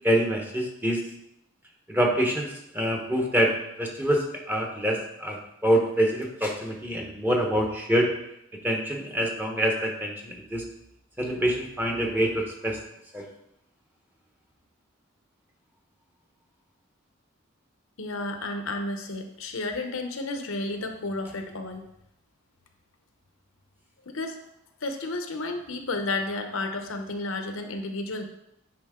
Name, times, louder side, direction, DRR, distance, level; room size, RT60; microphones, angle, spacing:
voice 1, 0.0-1.0 1.9-8.1 8.6-10.6 11.2-12.8 13.1-13.2, right 1 dB, 10° right, 0 dB, 1.0 m, -26 dB
voice 2, 18.0-21.8 24.1-24.4 24.8-28.2, left 2 dB, 70° left, 6 dB, 0.9 m, -32 dB
8.6 x 5.1 x 3.7 m, 0.80 s
head